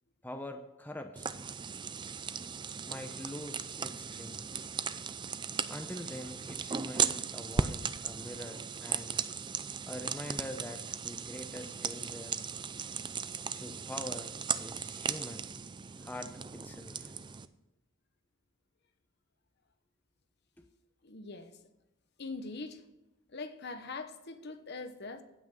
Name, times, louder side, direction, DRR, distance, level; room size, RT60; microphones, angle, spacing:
voice 1, 0.2-1.4 2.9-4.5 5.7-9.2 9.9-12.3 13.5-14.3 14.6-15.5 16.0-17.1 20.6-20.7, left 1 dB, 10° left, 0.7 m, -44 dB
sound 1, 1.2-17.5, right 6 dB, 20° right, 0.4 m, -37 dB
voice 2, 21.0-21.5 22.2-22.8 23.3-25.2, left 3 dB, 55° left, 1.1 m, -42 dB
16.0 x 6.0 x 6.6 m
head